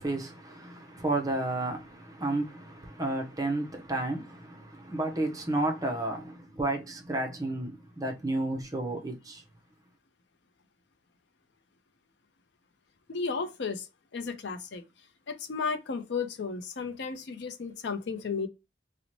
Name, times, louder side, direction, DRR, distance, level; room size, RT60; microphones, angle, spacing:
voice 1, 0.0-9.4, right 2 dB, 20° right, 0.5 m, -32 dB
voice 2, 13.1-13.8 14.1-14.8 15.3-18.5, left 5 dB, 65° left, 0.5 m, -33 dB
2.7 x 2.1 x 2.9 m
head